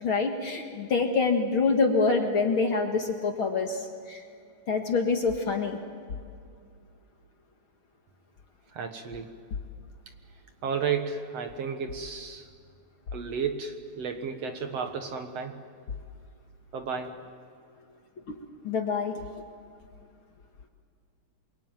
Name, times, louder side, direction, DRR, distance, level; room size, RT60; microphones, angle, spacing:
voice 1, 0.0-3.8 4.1-4.2 4.7-5.8 18.6-19.1, left 4 dB, 45° left, 4 dB, 2.1 m, -26 dB
voice 2, 8.7-9.3 10.6-12.5 13.1-15.6 16.7-17.1, right 6 dB, 60° right, 6 dB, 2.2 m, -32 dB
27.5 x 23.5 x 9.1 m, 2.2 s
omnidirectional pair, 3.7 m